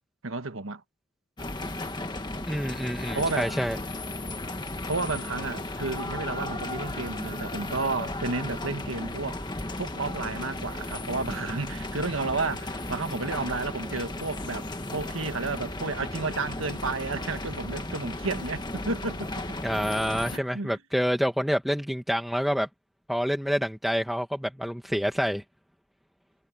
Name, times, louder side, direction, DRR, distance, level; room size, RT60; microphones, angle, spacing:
voice 1, 0.2-0.8 3.1-3.5 4.9-9.4 9.8-19.3 20.3-20.8, right 3 dB, 80° right, 1.4 m, -32 dB
sound 1, 1.4-20.4, left 2 dB, 20° left, 1.6 m, -35 dB
voice 2, 2.5-3.8 19.6-22.7 23.1-25.4, equal, ahead, 1.2 m, -27 dB
head